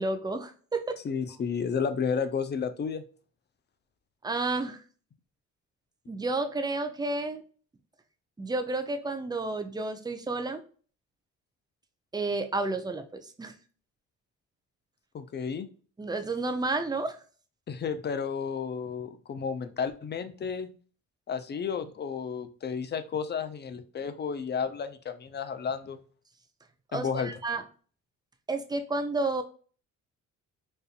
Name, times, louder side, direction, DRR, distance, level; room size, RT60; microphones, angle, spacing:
voice 1, 0.0-1.0 4.2-4.8 6.1-7.4 8.4-10.6 12.1-13.5 16.0-17.2 26.9-27.6 28.5-29.4, right 2 dB, 15° right, 7 dB, 0.6 m, -31 dB
voice 2, 1.0-3.0 15.1-15.7 17.7-20.7 21.3-26.0 26.9-27.3, left 6 dB, 35° left, 11 dB, 0.6 m, -32 dB
4.3 x 2.5 x 2.4 m, 0.41 s
cardioid pair, 90°, 30 cm